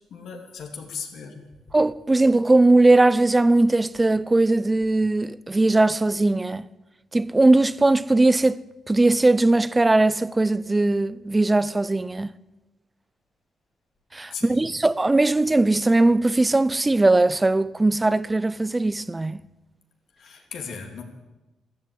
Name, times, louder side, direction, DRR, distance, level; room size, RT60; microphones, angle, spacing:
voice 1, 0.1-1.5 14.3-14.7 20.2-21.0, left 6 dB, 70° left, 2.6 m, -37 dB
voice 2, 1.7-6.6 7.1-12.3 14.1-19.4, right 2 dB, 15° right, 0.5 m, -19 dB
13.0 x 12.5 x 8.4 m
cardioid pair, 90°, 0 cm